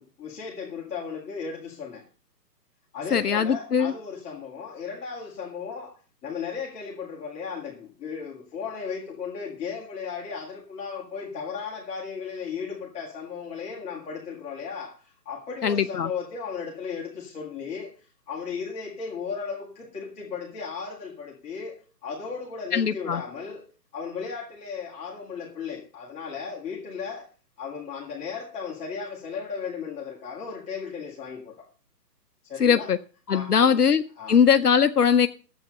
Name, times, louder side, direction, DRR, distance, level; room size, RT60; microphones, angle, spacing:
voice 1, 0.0-2.0 2.9-27.3 27.6-31.7 32.4-32.9 33.3-33.7 34.2-34.4, left 6 dB, 15° left, 2.0 m, -36 dB
voice 2, 3.1-3.9 15.6-16.1 22.7-23.2 32.6-33.0 33.3-34.0 34.3-35.3, left 7 dB, 65° left, 0.8 m, -20 dB
12.0 x 8.0 x 6.5 m
figure-of-eight pair, 135°, 50 cm